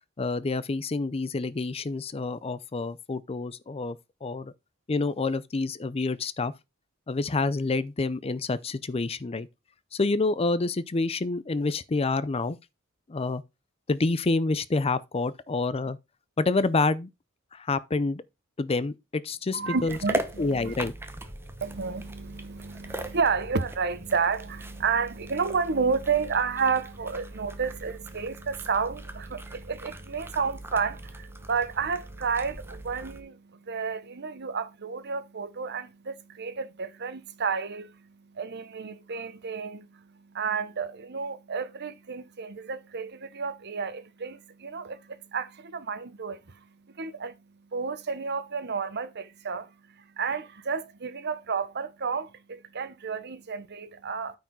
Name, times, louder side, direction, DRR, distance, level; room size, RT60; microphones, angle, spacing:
voice 1, 0.2-4.5 4.9-6.5 7.1-9.5 9.9-12.6 13.1-13.4 13.9-16.0 16.4-17.1 17.5-18.2 18.6-20.0 20.4-20.9, left 3 dB, 30° left, 0.5 m, -28 dB
voice 2, 19.5-20.7 21.6-54.4, right 5 dB, 55° right, 0.9 m, -31 dB
sound 1, 19.9-33.2, right 1 dB, 10° right, 0.9 m, -39 dB
9.3 x 4.7 x 4.6 m
head